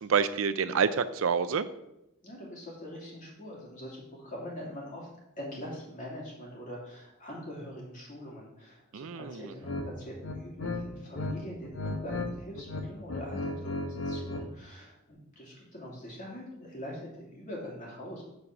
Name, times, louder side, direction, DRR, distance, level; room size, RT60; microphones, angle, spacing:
voice 1, 0.0-1.7 8.9-9.4, right 6 dB, 70° right, 13 dB, 0.4 m, -27 dB
voice 2, 2.2-5.1 5.4-18.2, equal, 35° left, -4 dB, 2.9 m, -43 dB
sound 1, 9.6-9.9 10.2-11.3 11.6-12.3 12.6-14.5, left 2 dB, 65° left, 1.0 m, -34 dB
7.5 x 4.8 x 6.0 m, 0.87 s
head